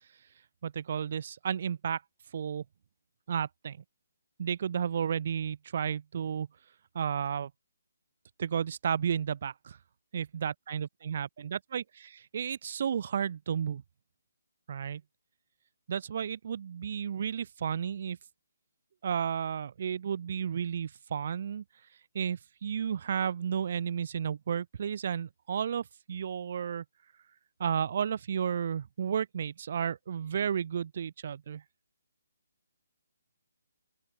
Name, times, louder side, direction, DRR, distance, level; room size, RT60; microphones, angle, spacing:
voice 1, 0.6-2.0 2.3-2.6 3.3-3.8 4.4-6.5 6.9-7.5 8.4-9.8 10.1-13.8 14.7-15.0 15.9-18.2 19.0-21.6 22.1-26.8 27.6-31.6, right 8 dB, 45° right, 0.8 m, -32 dB
open air
figure-of-eight pair, 140°, 0 cm